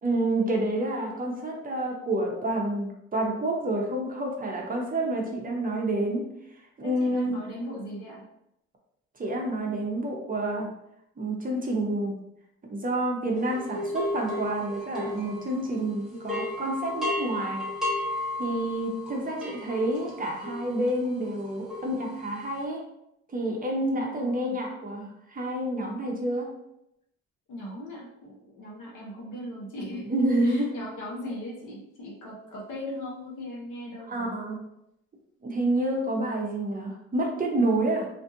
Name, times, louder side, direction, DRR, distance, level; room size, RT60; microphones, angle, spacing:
voice 1, 0.0-6.2 6.8-7.4 9.2-10.7 11.2-12.1 12.7-17.6 18.4-22.8 23.3-26.5 30.1-30.8 34.1-34.6 35.4-38.1, right 1 dB, 30° right, 0 dB, 0.6 m, -28 dB
voice 2, 6.8-8.2 23.9-24.6 27.5-30.1 30.4-34.4, left 1 dB, 75° left, -3 dB, 0.9 m, -39 dB
sound 1, 13.5-15.8 16.1-22.5, left 2 dB, ahead, 0.8 m, -34 dB
2.6 x 2.4 x 2.7 m, 0.80 s
cardioid pair, 90°, 30 cm